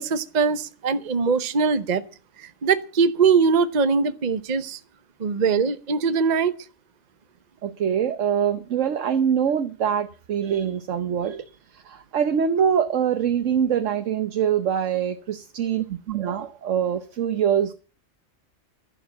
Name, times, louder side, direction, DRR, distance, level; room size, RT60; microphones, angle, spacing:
voice 1, 0.0-2.0 2.4-4.8 5.2-6.5, right 5 dB, 35° right, 0.9 m, -22 dB
voice 2, 7.6-11.4 11.7-17.7, right 8 dB, 75° right, 1.2 m, -24 dB
11.5 x 11.0 x 7.2 m
omnidirectional pair, 1.3 m